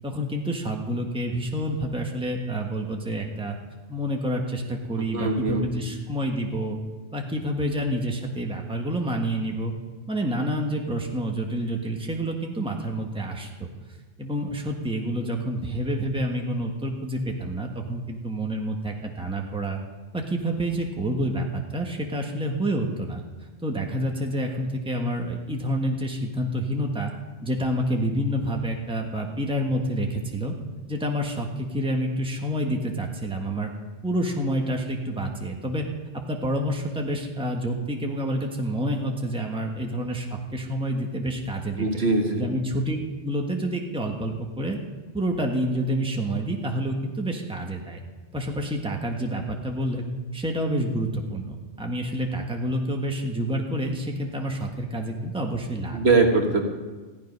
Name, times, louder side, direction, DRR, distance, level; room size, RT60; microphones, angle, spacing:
voice 1, 0.0-3.6 3.9-6.8 7.1-9.7 10.1-13.7 14.2-19.8 20.1-23.2 23.6-27.1 27.4-30.5 30.9-33.7 34.0-35.8 36.3-42.0 42.4-43.0 43.2-44.8 45.1-48.0 48.3-50.1 50.3-56.0, right 1 dB, 5° right, 1 dB, 1.4 m, -28 dB
voice 2, 5.0-5.7 41.8-42.5 55.9-56.7, right 3 dB, 60° right, 3 dB, 1.7 m, -22 dB
15.0 x 12.0 x 5.4 m, 1.3 s
omnidirectional pair, 1.2 m